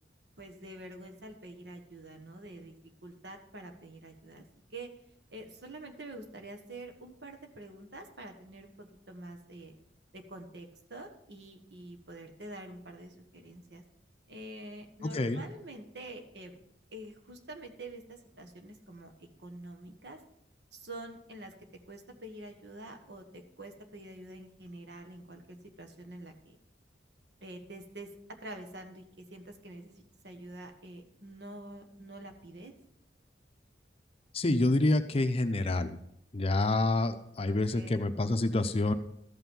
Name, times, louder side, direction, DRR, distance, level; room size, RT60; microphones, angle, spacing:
voice 1, 0.4-2.8 3.0-4.4 4.7-4.9 5.3-9.8 10.1-13.8 14.3-16.6 16.9-19.1 19.4-20.2 20.7-21.5 21.9-26.6 27.4-32.7 37.5-38.1, right 1 dB, 65° right, 5 dB, 1.4 m, -47 dB
voice 2, 34.3-36.0 36.3-38.9, left 2 dB, 35° left, 9 dB, 0.6 m, -27 dB
13.5 x 5.8 x 5.4 m, 0.74 s
head